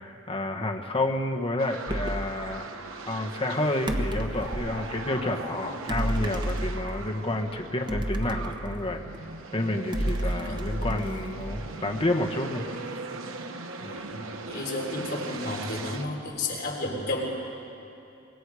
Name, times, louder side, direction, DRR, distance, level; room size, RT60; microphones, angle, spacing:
voice 1, 0.0-2.7 3.1-9.0 9.5-12.7 13.8-14.1, left 1 dB, 30° left, 2 dB, 1.3 m, -30 dB
sound 1, 1.6-16.1, right 3 dB, 80° right, 1.2 m, -39 dB
sound 2, 1.9-2.3 3.9-4.8 5.9-7.1 7.9-9.2 9.9-11.8, right 1 dB, 20° right, 1.0 m, -31 dB
voice 2, 14.1-17.3, left 2 dB, 50° left, -2 dB, 4.0 m, -32 dB
24.5 x 22.0 x 4.9 m, 2.7 s
head